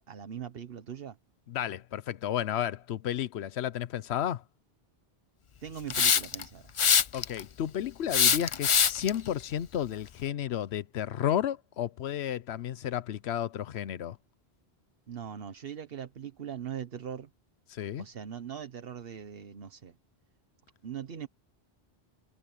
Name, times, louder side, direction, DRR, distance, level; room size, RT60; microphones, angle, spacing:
voice 1, 0.1-1.2 5.6-6.7 15.1-17.3 18.0-19.9 20.8-21.3, right 8 dB, 65° right, 1.2 m, -40 dB
voice 2, 1.5-4.4 7.1-14.2 17.7-18.1, left 10 dB, 85° left, 1.0 m, -32 dB
Hiss, 5.9-6.4 6.8-7.4 8.1-9.1, left 6 dB, 40° left, 0.5 m, -23 dB
omnidirectional pair, 1.1 m